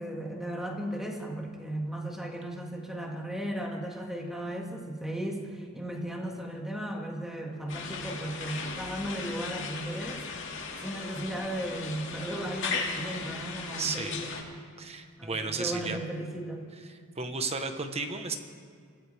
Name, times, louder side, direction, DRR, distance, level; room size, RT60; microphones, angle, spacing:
voice 1, 0.0-10.2 10.8-14.3 15.2-16.7, right 1 dB, ahead, 0 dB, 2.0 m, -36 dB
sound 1, 7.7-14.4, left 4 dB, 65° left, 2.2 m, -37 dB
voice 2, 13.8-14.2 14.8-16.0 17.2-18.4, right 4 dB, 30° right, 6 dB, 1.1 m, -33 dB
25.0 x 16.0 x 3.5 m, 2.2 s
head